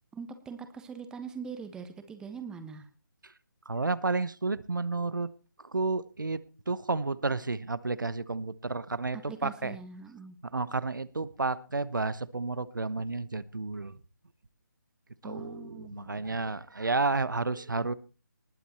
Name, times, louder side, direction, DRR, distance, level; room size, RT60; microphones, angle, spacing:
voice 1, 0.1-2.9 9.3-10.4 15.2-16.2, right 6 dB, 5° right, 9 dB, 1.3 m, -42 dB
voice 2, 3.7-5.3 5.7-6.4 6.7-9.8 10.5-14.0 15.2-17.9, right 3 dB, 80° right, 17 dB, 1.0 m, -31 dB
20.0 x 8.4 x 4.3 m, 0.34 s
figure-of-eight pair, 150°, 10 cm